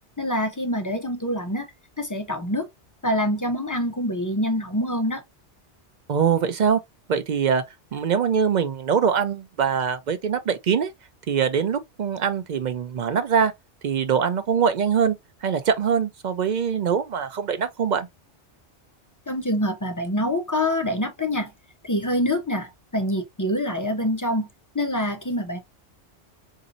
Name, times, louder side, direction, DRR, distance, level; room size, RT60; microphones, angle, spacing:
voice 1, 0.2-1.7 2.0-2.7 3.0-5.2 19.3-21.5 21.8-24.5 24.7-25.6, left 1 dB, 30° left, 0.4 m, -25 dB
voice 2, 6.1-6.8 7.1-7.6 7.9-10.9 11.3-13.5 13.8-18.1, right 7 dB, 60° right, 0.5 m, -23 dB
4.0 x 2.7 x 2.5 m
omnidirectional pair, 1.2 m